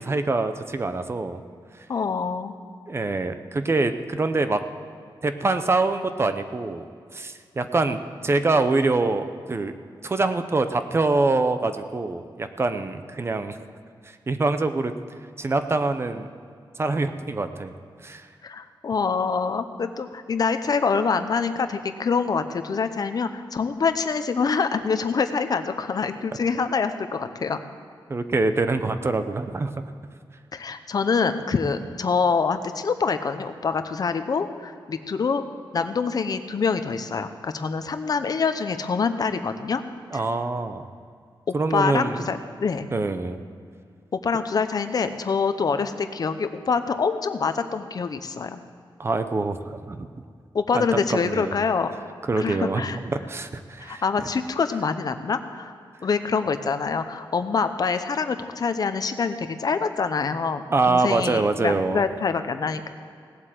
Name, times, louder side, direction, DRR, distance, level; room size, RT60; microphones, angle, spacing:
voice 1, 0.0-1.4 2.9-4.6 5.2-6.9 7.1-9.7 10.0-13.6 14.3-14.9 15.4-16.3 16.8-17.7 18.0-18.3 28.1-29.8 40.1-40.9 41.5-42.2 42.9-43.4 49.0-50.1 50.7-51.5 52.3-54.0 60.7-62.0, right 3 dB, 30° right, 9 dB, 0.7 m, -25 dB
voice 2, 1.9-2.5 18.4-27.6 30.5-35.4 35.7-39.8 40.1-40.2 41.5-42.9 44.1-48.6 50.5-51.9 52.4-53.0 53.8-55.7 56.0-62.9, left 5 dB, 50° left, 9 dB, 0.8 m, -25 dB
17.5 x 8.0 x 7.7 m, 2.2 s
wide cardioid pair, 150°, 9 cm